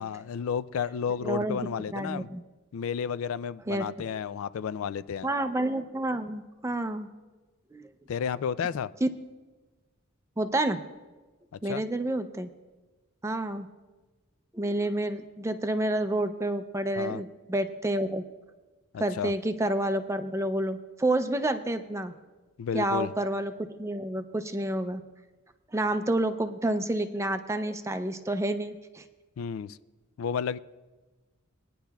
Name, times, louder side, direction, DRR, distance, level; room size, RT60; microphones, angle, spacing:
voice 1, 0.0-2.3 2.7-5.3 8.1-8.9 11.6-11.8 17.0-17.2 18.9-19.3 22.6-23.1 29.4-29.8 30.2-30.6, left 7 dB, 75° left, 15 dB, 0.3 m, -32 dB
voice 2, 1.2-1.6 1.9-2.4 3.7-3.8 5.2-7.1 7.7-7.8 9.0-9.1 10.4-10.8 11.6-12.5 13.2-13.7 14.5-18.2 19.0-22.1 22.7-25.0 25.7-29.0, right 1 dB, 15° right, 9 dB, 0.4 m, -29 dB
20.5 x 10.0 x 2.3 m, 1.2 s
head